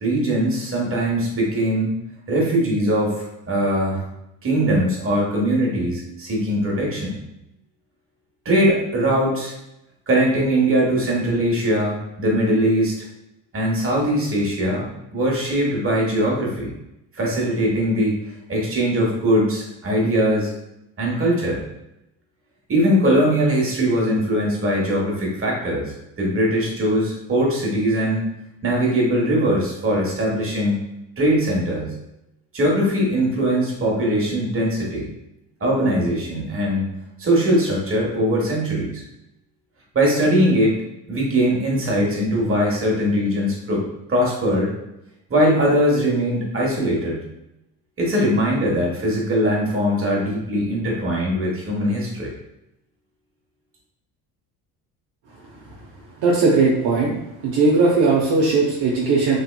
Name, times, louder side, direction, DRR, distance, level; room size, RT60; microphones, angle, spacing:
voice 1, 0.0-1.9 2.3-4.0 4.4-7.1 8.4-9.5 10.1-12.9 13.5-16.7 17.1-18.2 18.5-20.5 21.0-21.6 22.7-25.9 26.2-28.3 28.6-30.8 31.2-31.9 32.5-35.1 35.6-36.9 37.2-39.0 39.9-40.8 41.1-43.8 44.1-44.7 45.3-47.2 48.0-52.3, equal, 25° right, -3 dB, 1.2 m, -21 dB
voice 2, 56.2-57.1 57.4-59.4, right 3 dB, 50° right, -4 dB, 0.8 m, -18 dB
3.2 x 2.8 x 2.2 m, 0.85 s
supercardioid pair, 85°, 47 cm